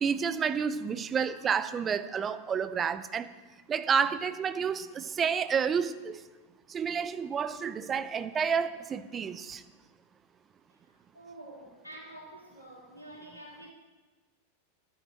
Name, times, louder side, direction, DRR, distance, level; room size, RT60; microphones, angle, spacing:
voice 1, 0.0-3.3 3.7-6.2 6.7-9.6, right 6 dB, 20° right, 13 dB, 0.5 m, -30 dB
voice 2, 10.7-13.7, right 1 dB, 90° left, -3 dB, 3.1 m, -48 dB
13.0 x 9.6 x 4.3 m, 1.3 s
figure-of-eight pair, 90°, 0 cm